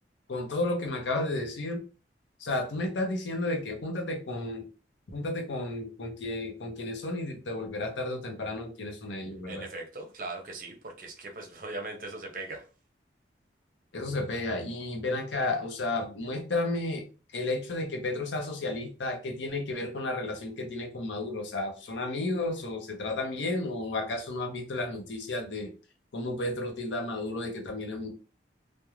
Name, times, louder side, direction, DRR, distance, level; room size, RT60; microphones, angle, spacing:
voice 1, 0.3-1.8 2.4-4.6 5.1-9.7 13.9-17.0 17.3-25.7 26.1-28.1, left 2 dB, 90° left, 0.6 m, -32 dB
voice 2, 9.5-12.6, right 2 dB, 50° right, 0.6 m, -39 dB
2.4 x 2.1 x 3.0 m
head